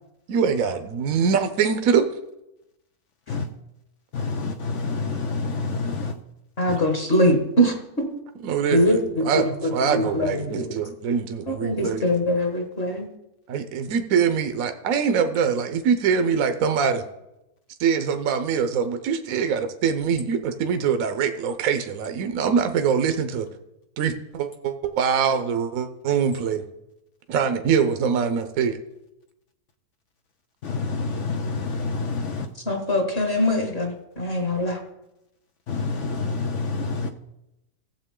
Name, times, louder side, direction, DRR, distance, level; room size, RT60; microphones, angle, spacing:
voice 1, 0.3-2.1 8.4-9.0 9.2-9.4 9.7-12.0 13.5-17.0 17.8-23.5 24.0-26.6 27.3-28.8, right 6 dB, 65° right, 8 dB, 1.1 m, -23 dB
voice 2, 4.1-6.1 6.7-6.8 30.6-32.5 35.7-37.1, left 4 dB, 65° left, 6 dB, 0.8 m, -28 dB
voice 3, 6.6-8.1 8.7-10.7 11.5-13.1 32.7-34.8, equal, 40° left, 2 dB, 1.7 m, -23 dB
15.5 x 7.2 x 3.7 m, 0.89 s
omnidirectional pair, 1.6 m